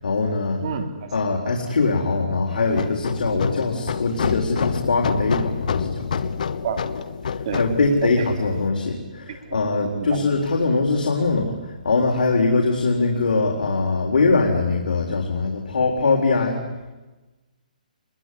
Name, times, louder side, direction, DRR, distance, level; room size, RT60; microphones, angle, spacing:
voice 1, 0.0-0.6 1.1-6.3 7.3-16.6, left 3 dB, 80° left, 1 dB, 3.9 m, -22 dB
voice 2, 0.6-1.1 6.6-6.8 7.4-7.6 8.0-8.3 9.4-9.6 9.9-10.2, right 7 dB, 40° right, 7 dB, 3.0 m, -28 dB
sound 1, 2.7-8.7, left 6 dB, 60° left, 1.4 m, -28 dB
26.5 x 22.0 x 9.9 m, 1.2 s
hypercardioid pair, 170°, 5 cm